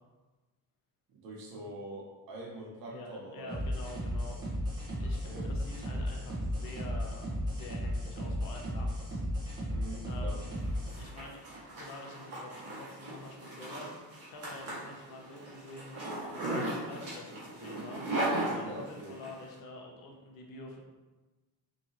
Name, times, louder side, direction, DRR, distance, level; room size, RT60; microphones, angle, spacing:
voice 1, 1.1-3.6 5.3-5.5 9.7-10.4 18.6-19.1, right 1 dB, 60° right, -3 dB, 0.8 m, -44 dB
voice 2, 2.9-4.4 5.0-9.2 10.1-10.5 10.9-11.4 11.7-18.1 18.4-20.8, left 2 dB, 60° left, 1 dB, 0.6 m, -47 dB
sound 1, 3.5-11.0, equal, 10° right, 0.5 m, -35 dB
Zipper (clothing), 10.6-19.3, right 1 dB, 40° right, 1.1 m, -37 dB
2.9 x 2.7 x 2.5 m, 1.2 s
cardioid pair, 165°, 39 cm